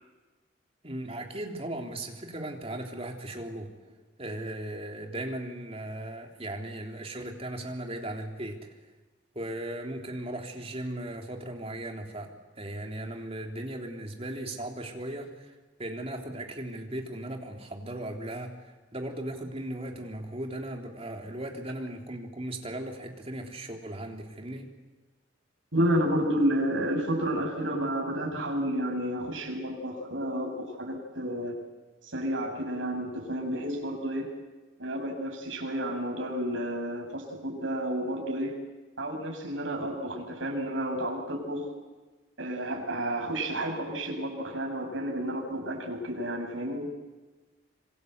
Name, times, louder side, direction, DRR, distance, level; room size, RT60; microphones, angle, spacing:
voice 1, 0.8-3.8 4.2-8.7 9.4-15.5 15.8-24.7, right 1 dB, 30° right, 2 dB, 3.6 m, -37 dB
voice 2, 25.7-31.6 32.0-34.3 34.8-38.6 39.0-41.7 42.4-46.9, right 1 dB, 75° right, 0 dB, 7.8 m, -31 dB
26.5 x 26.0 x 8.2 m, 1.2 s
head